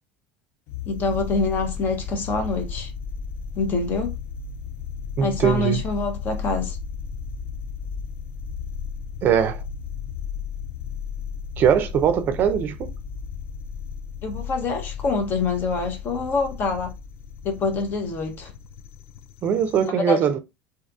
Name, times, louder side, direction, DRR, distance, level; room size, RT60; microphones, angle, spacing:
sound 1, 0.7-19.9, left 6 dB, 60° left, 0.3 m, -34 dB
voice 1, 0.9-2.9 3.6-4.1 5.2-6.8 14.2-16.9 17.4-18.5 19.8-20.2, left 3 dB, 45° left, 0.7 m, -26 dB
voice 2, 5.2-5.8 9.2-9.6 11.6-12.9 19.4-20.4, right 8 dB, 45° right, 0.4 m, -21 dB
2.8 x 2.3 x 2.3 m
supercardioid pair, 110°, 5 cm